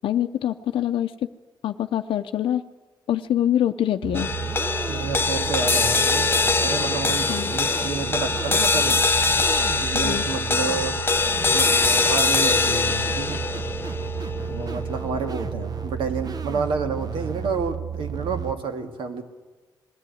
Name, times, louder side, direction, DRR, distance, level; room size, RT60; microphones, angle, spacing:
voice 1, 0.0-1.1 1.6-2.6 3.1-4.3 7.3-7.5 10.0-10.2, left 11 dB, 85° left, 6 dB, 0.6 m, -24 dB
sound 1, 4.0-18.5, right 7 dB, 50° right, 1.1 m, -32 dB
sound 2, 4.1-16.6, left 4 dB, 25° left, 0.8 m, -23 dB
voice 2, 4.9-6.3 6.6-9.0 9.8-11.0 11.5-13.4 14.4-19.2, right 5 dB, 85° right, 6 dB, 1.9 m, -30 dB
20.5 x 14.0 x 9.3 m, 1.3 s
cardioid pair, 85°, 9 cm